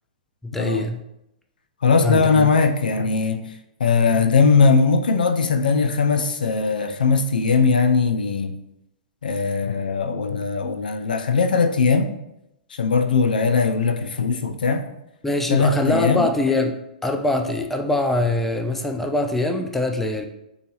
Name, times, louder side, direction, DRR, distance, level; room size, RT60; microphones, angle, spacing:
voice 1, 0.4-1.0 2.0-2.5 15.2-16.8 17.0-20.2, left 2 dB, 5° left, 0.3 m, -23 dB
voice 2, 1.8-3.4 3.8-8.5 9.2-12.1 12.8-14.9 15.5-16.3, left 4 dB, 80° left, 0.3 m, -19 dB
3.9 x 2.3 x 2.8 m
hypercardioid pair, 120°, 5 cm